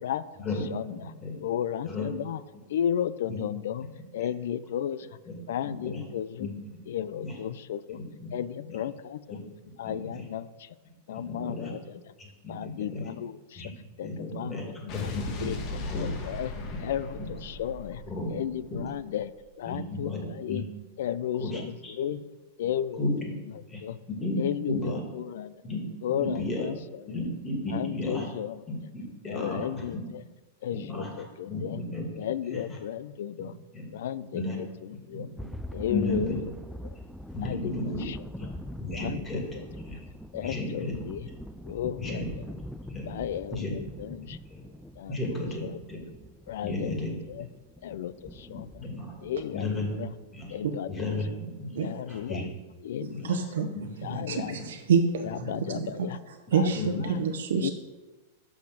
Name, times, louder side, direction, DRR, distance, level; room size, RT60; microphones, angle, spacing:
voice 1, 0.0-1.1 1.4-2.4 2.7-3.9 4.1-5.2 5.5-6.5 6.9-8.0 8.3-9.4 9.8-10.8 11.1-12.1 12.5-13.7 14.0-14.1 14.3-15.1 15.4-16.5 16.8-18.0 18.3-19.3 19.6-20.6 21.0-22.2 22.6-23.5 23.8-24.0 24.4-25.5 26.0-27.3 27.7-28.6 29.3-30.2 30.6-31.8 32.2-33.6 33.9-35.3 35.7-36.4 36.8-37.0 37.4-37.7 38.0-38.5 38.9-39.7 40.3-41.3 41.7-42.3 43.1-44.4 45.0-45.8 46.5-46.9 47.3-47.5 47.8-48.9 49.2-49.7 50.0-50.1 50.5-51.2 51.7-52.5 52.8-53.3 54.0-54.6 55.2-56.2 56.5-57.2 57.6-57.7, left 10 dB, 75° left, 16 dB, 0.4 m, -34 dB
voice 2, 0.9-1.3 1.9-2.1 3.3-3.4 5.3-5.4 5.6-6.0 6.4-6.5 7.2-7.3 7.9-8.3 9.8-10.1 11.1-11.7 12.2-13.1 13.6-13.7 14.0-14.6 14.9-16.0 16.7-16.8 17.2-17.3 18.1-18.3 18.7-18.8 19.7-20.6 21.4-21.9 23.0-23.1 23.7-23.8 24.1-24.4 24.7-25.0 25.6-25.8 26.2-26.7 27.1-28.3 28.9-29.7 30.7-31.1 31.4-32.0 33.7-33.8 34.3-34.6 35.1-35.5 35.9-36.4 37.3-38.1 38.4-38.5 38.8-39.4 39.8-40.0 40.4-41.0 42.0-42.3 42.9-43.1 43.5-43.7 44.5-44.6 45.1-45.6 45.9-46.0 46.6-47.1 48.5-49.1 49.5-49.9 50.3-50.5 50.9-51.3 51.6-51.8 52.1-52.5 53.1-53.4 53.7-54.2 54.5-54.7 55.4-55.8 56.8-57.1, left 2 dB, 20° left, 0 dB, 2.3 m, -33 dB
Explosion, 14.9-19.2, left 2 dB, 45° left, 1.4 m, -37 dB
sound 1, 35.4-51.1, left 1 dB, ahead, 0.4 m, -44 dB
voice 3, 51.8-52.2 53.2-53.7 54.3-55.2 55.7-56.1 56.5-57.7, right 6 dB, 85° right, 5 dB, 0.8 m, -27 dB
6.4 x 5.8 x 6.4 m, 1.2 s
hypercardioid pair, 135°, 0 cm